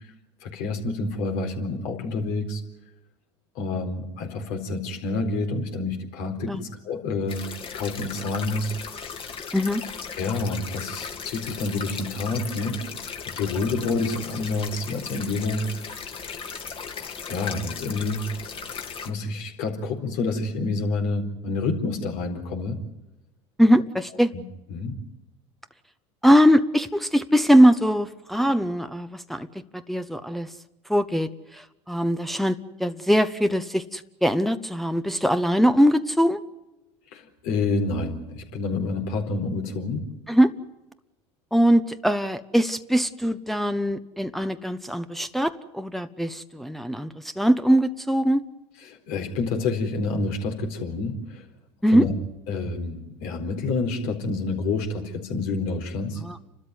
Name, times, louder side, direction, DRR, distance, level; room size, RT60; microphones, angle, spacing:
voice 1, 0.4-2.6 3.5-7.5 7.7-8.7 10.2-12.8 13.3-15.7 17.0-18.3 19.0-22.8 24.3-24.4 24.7-25.0 37.1-40.0 48.9-51.4 51.9-52.1 52.5-56.2, left 3 dB, 70° left, 4 dB, 4.2 m, -28 dB
sound 1, 7.3-19.1, left 6 dB, 35° left, 2.6 m, -37 dB
voice 2, 23.6-24.3 26.2-29.5 29.7-30.5 30.9-36.4 40.3-40.5 41.5-48.4 51.8-52.1 56.2-56.4, equal, ahead, 8 dB, 1.0 m, -21 dB
29.5 x 13.0 x 9.5 m, 1.0 s
hypercardioid pair, 90°, 15 cm